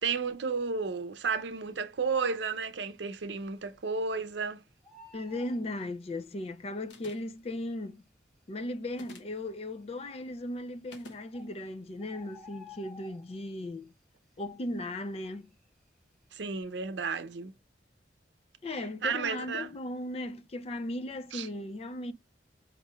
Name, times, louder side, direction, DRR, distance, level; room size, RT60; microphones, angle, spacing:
voice 1, 0.0-4.6 16.3-17.5 19.0-19.7 21.3-21.5, right 5 dB, 80° right, 0.6 m, -32 dB
Bird, 1.9-2.5 2.9-3.0 3.2-4.4 4.7-6.5 7.4-7.5 8.1-8.2 8.4-8.5 9.1-9.6 10.6-10.7 11.0-11.1 11.3-13.6 14.0-14.3 14.6-16.0 16.3-16.6, left 3 dB, ahead, 0.8 m, -53 dB
voice 2, 5.1-8.0 8.5-13.9 14.4-15.5 18.6-22.1, left 1 dB, 35° left, 0.4 m, -37 dB
sound 1, 6.9-7.4 8.9-9.4 10.9-11.2, left 2 dB, 80° left, 0.9 m, -49 dB
5.2 x 3.0 x 2.2 m
head